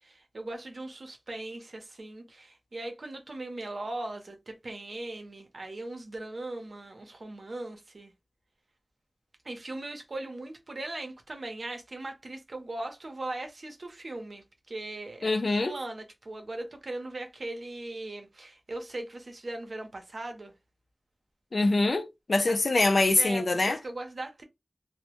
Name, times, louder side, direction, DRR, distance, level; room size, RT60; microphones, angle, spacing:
voice 1, 0.0-8.1 9.4-20.5 22.5-22.6 23.2-24.4, right 2 dB, 85° right, 0.6 m, -39 dB
voice 2, 15.2-15.8 21.5-23.8, left 2 dB, 80° left, 0.4 m, -24 dB
2.1 x 2.1 x 2.8 m
wide cardioid pair, 60°, 0 cm